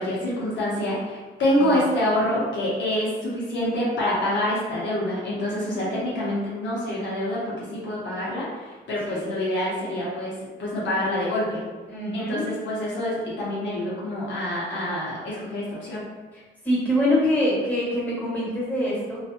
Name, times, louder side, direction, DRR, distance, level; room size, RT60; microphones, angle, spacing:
voice 1, 0.0-10.3 10.6-11.6 12.1-16.0, left 1 dB, 65° left, -6 dB, 0.8 m, -26 dB
voice 2, 5.3-5.8 9.1-9.2 11.9-12.4 16.6-19.2, left 1 dB, 10° left, -7 dB, 1.4 m, -25 dB
2.6 x 2.4 x 2.4 m, 1.3 s
cardioid pair, 90°, 20 cm